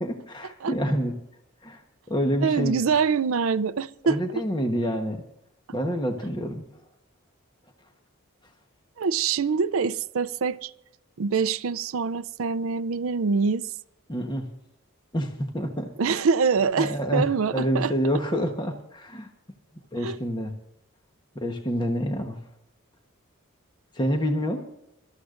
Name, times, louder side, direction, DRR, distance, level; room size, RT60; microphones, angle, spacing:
voice 1, 0.0-1.1 1.6-1.8 2.1-2.7 4.0-5.2 5.7-6.8 14.1-14.5 15.1-16.2 16.8-19.3 19.9-20.5 21.3-22.4 23.9-24.6, equal, 20° left, 1.1 m, -27 dB
voice 2, 2.4-4.2 9.0-10.7 11.2-13.7 16.0-17.9 20.0-20.2, right 5 dB, 75° right, 0.5 m, -25 dB
24.5 x 13.5 x 2.6 m
head